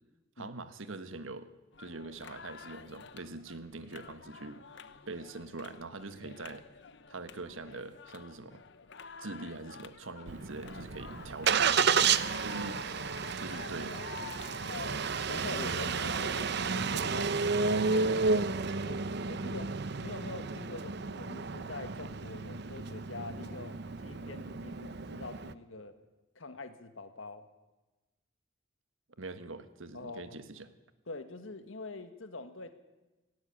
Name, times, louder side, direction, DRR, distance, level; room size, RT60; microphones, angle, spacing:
voice 1, 0.4-1.5 1.8-4.6 5.1-6.7 7.1-8.6 9.2-12.8 13.4-14.0 18.3-18.4 29.2-30.7, right 3 dB, 90° right, 11 dB, 1.4 m, -43 dB
sound 1, 1.7-16.8, left 5 dB, 65° left, 0.9 m, -49 dB
Engine starting, 10.3-25.5, right 5 dB, 60° right, 0.8 m, -32 dB
voice 2, 15.2-17.4 17.7-18.2 18.8-26.0 26.4-27.5 29.9-30.4 31.1-32.7, left 3 dB, 90° left, 10 dB, 1.8 m, -45 dB
17.5 x 17.5 x 8.7 m, 1.1 s
head